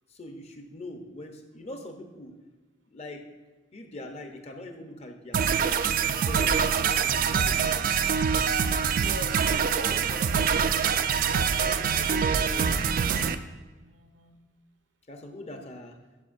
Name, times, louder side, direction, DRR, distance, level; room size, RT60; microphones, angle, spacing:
voice 1, 0.1-2.4 2.9-3.3 3.7-7.9 9.4-10.5 11.6-12.9 15.1-16.0, left 1 dB, 35° left, 5 dB, 0.7 m, -42 dB
sound 1, 5.3-13.3, right 7 dB, 50° right, 0.3 m, -25 dB
voice 2, 8.9-10.5 13.7-14.4, right 2 dB, 75° right, 5 dB, 0.8 m, -42 dB
11.0 x 5.3 x 2.5 m, 1.2 s
head